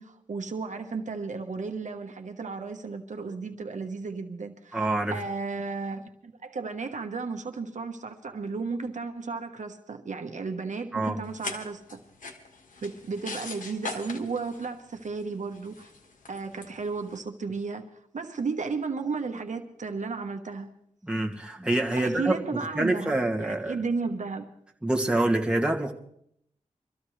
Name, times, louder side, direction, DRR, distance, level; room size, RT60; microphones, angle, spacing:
voice 1, 0.0-12.0 12.8-15.9 16.3-20.7 22.0-24.5, right 4 dB, 70° right, 6 dB, 1.2 m, -34 dB
voice 2, 4.7-5.1 10.9-11.2 21.0-22.3 22.8-23.8 24.8-25.9, right 2 dB, 5° right, 1 dB, 2.2 m, -26 dB
sound 1, 11.2-17.2, left 4 dB, 85° left, 1.6 m, -42 dB
24.0 x 14.0 x 3.2 m, 0.71 s
cardioid pair, 55°, 13 cm